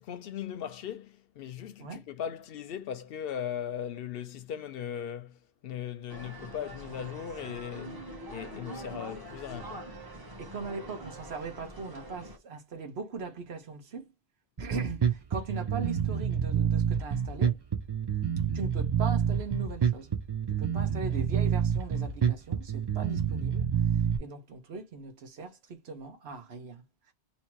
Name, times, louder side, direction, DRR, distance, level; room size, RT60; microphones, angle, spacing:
voice 1, 0.0-10.0, left 9 dB, 65° left, 0.7 m, -38 dB
sound 1, 6.1-12.4, right 1 dB, 20° right, 0.9 m, -44 dB
voice 2, 10.4-14.1 14.6-17.6 18.5-20.2 20.5-23.9 24.2-27.1, right 4 dB, 70° right, 1.2 m, -40 dB
Bass guitar, 14.6-24.2, right 7 dB, 40° right, 0.3 m, -28 dB
2.9 x 2.7 x 4.4 m
omnidirectional pair, 1.1 m